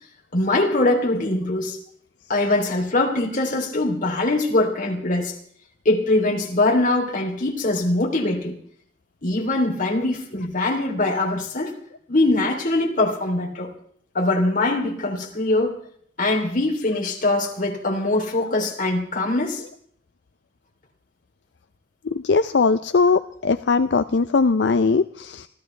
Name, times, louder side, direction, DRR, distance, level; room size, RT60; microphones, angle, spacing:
voice 1, 0.3-1.8 2.3-5.4 5.8-8.6 9.2-11.7 12.1-13.7 14.1-15.8 16.2-19.6, left 2 dB, 50° left, 2 dB, 3.2 m, -22 dB
voice 2, 22.2-25.5, left 4 dB, 75° left, 11 dB, 0.5 m, -20 dB
26.5 x 14.5 x 3.3 m, 0.62 s
head